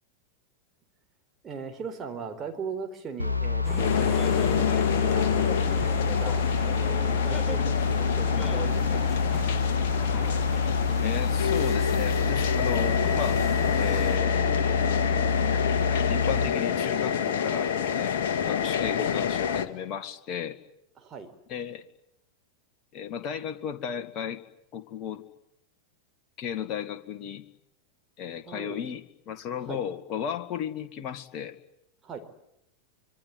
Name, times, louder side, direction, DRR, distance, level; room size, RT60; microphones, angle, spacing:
voice 1, 1.4-5.4 5.8-9.1 18.5-18.6 21.0-21.3 28.5-28.8 29.5-29.8 32.0-32.2, right 5 dB, 20° right, 4 dB, 4.2 m, -39 dB
sound 1, 3.2-16.5, left 4 dB, 85° left, 1.5 m, -27 dB
sound 2, 3.6-14.2, left 3 dB, 15° left, 1.4 m, -40 dB
sound 3, 3.8-19.7, left 8 dB, 55° left, 1.8 m, -28 dB
voice 2, 11.0-13.4 13.8-14.9 16.1-18.2 18.5-20.6 21.5-21.8 22.9-24.4 24.7-25.2 26.4-27.4 28.2-31.6, left 8 dB, 35° left, 8 dB, 2.2 m, -34 dB
25.5 x 23.5 x 9.7 m, 0.79 s
figure-of-eight pair, 90°, 0 cm